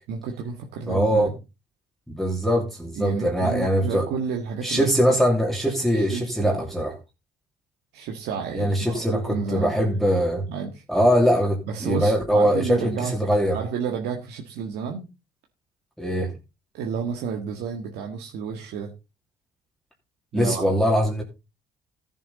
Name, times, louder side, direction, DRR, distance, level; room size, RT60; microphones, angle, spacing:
voice 1, 0.1-1.3 3.0-4.9 5.9-6.6 7.9-10.0 10.5-10.8 11.7-13.1 13.5-15.1 16.7-18.9 20.3-20.7, right 6 dB, 80° right, 2 dB, 1.8 m, -31 dB
voice 2, 0.9-1.3 2.1-4.0 4.6-6.9 8.5-10.4 10.9-13.6 16.0-16.3 20.3-21.2, equal, ahead, -1 dB, 2.8 m, -22 dB
14.0 x 7.4 x 4.1 m, 0.28 s
cardioid pair, 110°, 17 cm